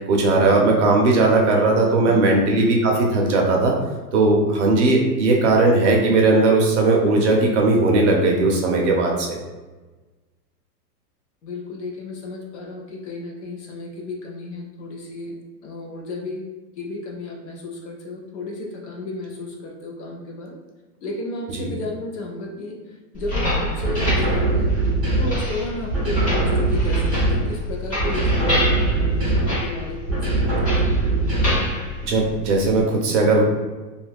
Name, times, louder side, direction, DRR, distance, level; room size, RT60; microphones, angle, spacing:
voice 1, 0.0-3.7 4.1-9.4 21.5-21.6 32.0-33.4, right 2 dB, 45° right, 0 dB, 0.6 m, -18 dB
voice 2, 2.1-2.4 11.4-16.5 16.8-20.6 21.0-24.7 25.2-30.9, left 2 dB, 45° left, 0 dB, 0.5 m, -33 dB
sound 1, 23.1-32.8, left 1 dB, 15° left, 0.8 m, -28 dB
sound 2, 23.8-25.5 25.9-27.6 28.0-29.7 30.1-31.8, right 2 dB, 5° right, 0.5 m, -21 dB
2.7 x 2.4 x 3.3 m, 1.2 s
supercardioid pair, 155°, 50 cm